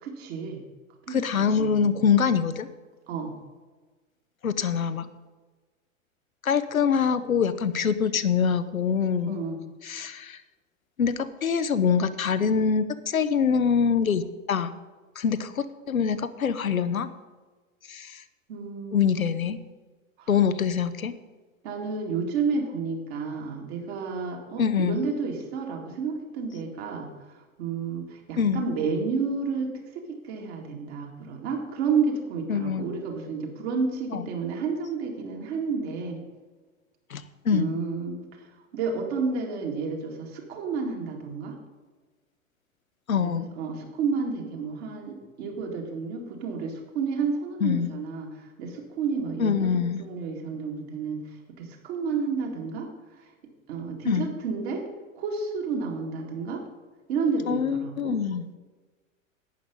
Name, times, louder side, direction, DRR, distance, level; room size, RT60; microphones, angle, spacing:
voice 1, 0.0-0.6 1.1-1.9 3.1-3.3 9.3-9.7 18.5-19.6 20.2-20.3 21.6-27.1 27.6-36.2 37.5-38.2 38.7-41.6 43.2-51.2 51.6-52.9 53.7-54.8 55.2-56.6 57.1-58.2, right 5 dB, 50° right, 1 dB, 2.3 m, -31 dB
voice 2, 1.1-2.7 4.4-5.1 6.4-9.4 9.8-10.4 11.0-14.7 15.2-17.1 17.9-18.2 18.9-19.6 20.3-21.1 24.6-25.0 28.4-28.7 32.5-32.9 34.1-34.2 37.1-37.7 43.1-43.5 47.6-47.9 49.4-50.0 54.1-54.3 57.5-58.5, left 6 dB, 85° left, 12 dB, 0.7 m, -24 dB
11.5 x 8.7 x 5.3 m, 1.3 s
figure-of-eight pair, 95°, 40 cm